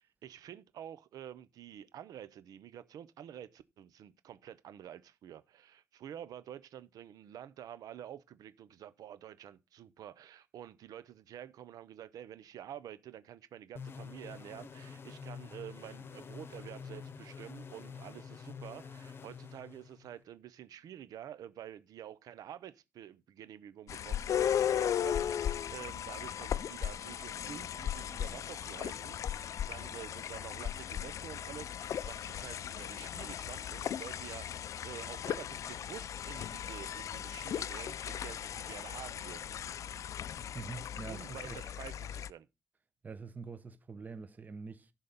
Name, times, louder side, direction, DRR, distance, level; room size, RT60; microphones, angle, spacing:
voice 1, 0.0-39.5 41.1-42.5, right 10 dB, 75° right, 0.7 m, -49 dB
sound 1, 13.8-20.2, left 6 dB, 35° left, 0.9 m, -47 dB
sound 2, 23.9-42.3, left 9 dB, 55° left, 0.4 m, -37 dB
voice 2, 40.5-41.6 43.0-44.9, right 4 dB, 25° right, 0.8 m, -45 dB
11.0 x 4.0 x 6.8 m
cardioid pair, 135°, 6 cm